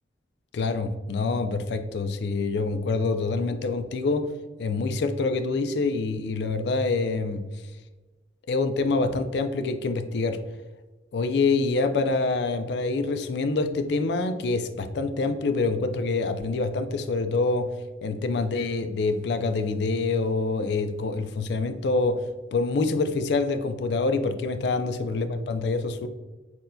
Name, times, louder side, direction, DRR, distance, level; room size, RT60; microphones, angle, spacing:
voice 1, 0.5-4.3 4.6-7.4 8.5-10.4 11.1-17.7 18.0-22.2 22.5-26.1, left 3 dB, 60° left, 8 dB, 0.4 m, -26 dB
5.9 x 2.2 x 2.6 m, 1.2 s
head